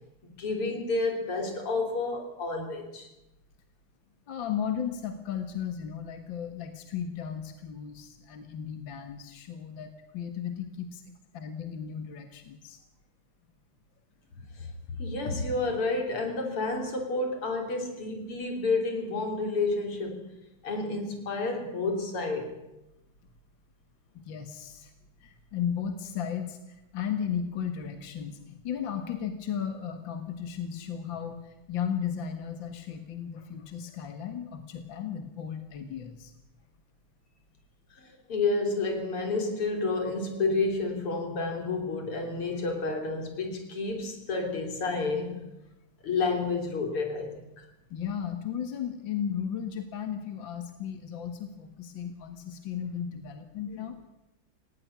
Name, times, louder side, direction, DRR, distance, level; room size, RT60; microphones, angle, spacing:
voice 1, 0.4-3.1 14.6-14.7 15.0-20.3 20.6-22.6 38.3-45.4 46.0-47.4, left 3 dB, 80° left, 4.3 m, -30 dB
voice 2, 4.3-12.8 24.1-24.9 25.2-36.3 47.9-54.1, left 8 dB, 60° left, 2.3 m, -35 dB
18.5 x 17.5 x 9.6 m
omnidirectional pair, 2.4 m